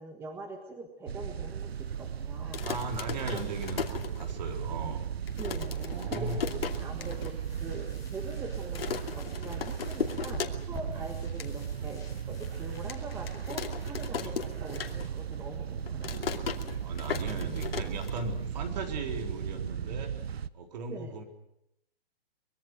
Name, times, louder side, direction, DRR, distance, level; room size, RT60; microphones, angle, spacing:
voice 1, 0.0-2.6 3.3-3.4 5.4-16.4 20.9-21.1, right 3 dB, 10° right, 4 dB, 1.5 m, -43 dB
sound 1, 1.1-20.5, right 8 dB, 85° right, 1.0 m, -36 dB
sound 2, 2.4-4.7 5.0-5.1 5.3-7.3 7.7-7.8 8.0-8.4 8.7-10.9 11.2-11.5 12.0-12.1 12.9-15.3 15.6-18.6, left 7 dB, 75° left, 2.7 m, -37 dB
voice 2, 2.6-5.0 5.7-6.5 7.0-7.3 10.9-11.1 14.2-14.3 16.8-20.3 20.5-21.2, right 3 dB, 45° right, 4 dB, 4.0 m, -38 dB
sound 3, 6.9-14.6, left 2 dB, 10° left, 5.6 m, -50 dB
24.0 x 22.0 x 7.8 m, 0.81 s
hypercardioid pair, 160°, 30 cm